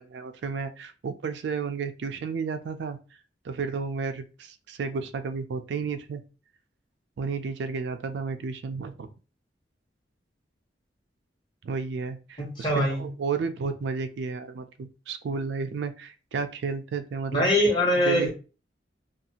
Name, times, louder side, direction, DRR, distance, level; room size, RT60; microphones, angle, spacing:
voice 1, 0.0-3.0 3.4-6.2 7.2-9.1 11.6-17.5 18.0-18.3, right 5 dB, 75° right, 9 dB, 0.3 m, -32 dB
voice 2, 12.4-13.1 17.3-18.3, left 1 dB, 25° left, -3 dB, 1.1 m, -23 dB
2.5 x 2.3 x 2.8 m, 0.33 s
head